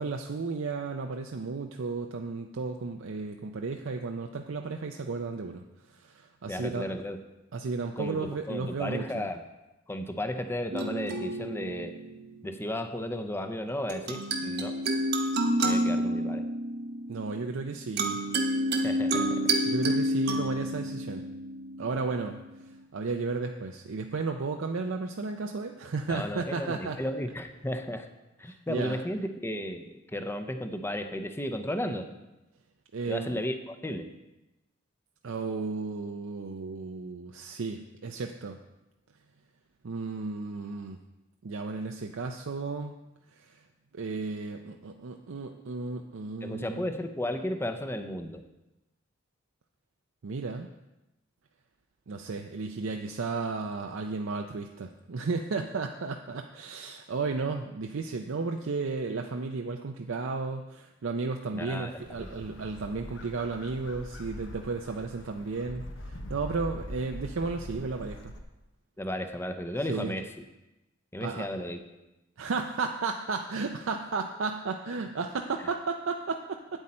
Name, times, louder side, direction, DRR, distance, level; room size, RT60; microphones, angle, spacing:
voice 1, 0.0-5.6 5.9-6.8 7.5-9.3 17.1-18.2 19.7-21.3 21.8-22.4 22.9-27.0 28.5-29.0 32.9-33.4 35.2-38.6 39.8-41.0 41.4-42.9 43.4-43.6 43.9-46.9 50.2-50.7 52.1-68.3 69.9-70.1 71.2-71.5 72.4-76.8, right 4 dB, 80° right, 3 dB, 0.5 m, -34 dB
voice 2, 6.5-7.2 8.0-9.4 9.9-11.9 12.4-14.8 15.6-16.5 18.8-19.5 26.1-28.1 28.4-32.1 33.1-34.1 46.4-48.4 61.5-61.9 62.2-62.4 69.0-70.2 71.1-71.8, left 1 dB, 10° left, 7 dB, 0.6 m, -34 dB
sound 1, 10.7-12.5 13.9-22.4, right 1 dB, 55° right, 1.0 m, -29 dB
sound 2, 62.0-68.4, left 1 dB, 65° left, 0.9 m, -43 dB
8.9 x 8.0 x 4.3 m, 0.98 s
head